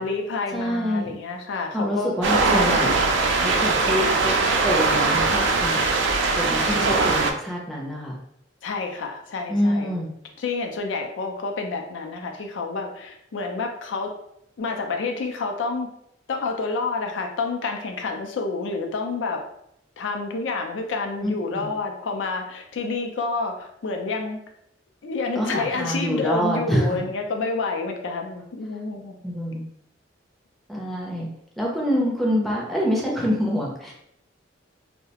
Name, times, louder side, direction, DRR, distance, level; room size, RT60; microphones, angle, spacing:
voice 1, 0.0-2.1 2.5-2.9 4.0-4.2 8.6-9.9 10.4-14.1 14.6-15.9 16.3-19.4 20.0-24.4 25.0-29.2, left 3 dB, 80° left, 3 dB, 0.4 m, -29 dB
voice 2, 0.5-1.1 1.7-2.9 3.4-4.3 4.6-5.8 6.4-8.2 9.5-10.1 21.2-21.7 25.3-27.0 29.2-29.6 30.7-31.3 31.6-33.9, equal, ahead, -3 dB, 0.4 m, -26 dB
sound 1, 2.2-7.3, right 3 dB, 70° right, 0.3 m, -21 dB
2.3 x 2.1 x 2.8 m, 0.75 s
head